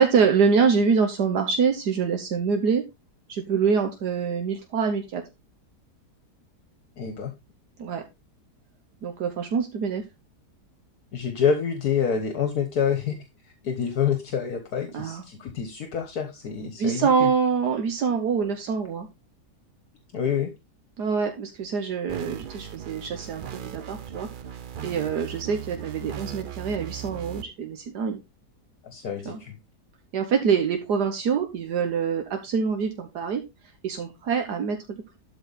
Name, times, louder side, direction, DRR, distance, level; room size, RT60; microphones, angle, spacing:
voice 1, 0.0-2.8 3.3-5.2 7.8-8.0 9.0-10.0 14.9-15.2 16.8-19.1 21.0-24.3 24.8-28.2 29.2-29.4 30.1-33.4 33.8-35.2, right 6 dB, 75° right, 5 dB, 1.6 m, -25 dB
voice 2, 7.0-7.3 11.1-13.2 13.6-17.3 20.1-20.5 28.8-29.6, left 7 dB, 70° left, 6 dB, 1.6 m, -27 dB
sound 1, 22.1-27.4, right 9 dB, 55° right, 0.5 m, -38 dB
12.0 x 4.7 x 4.0 m, 0.24 s
omnidirectional pair, 1.7 m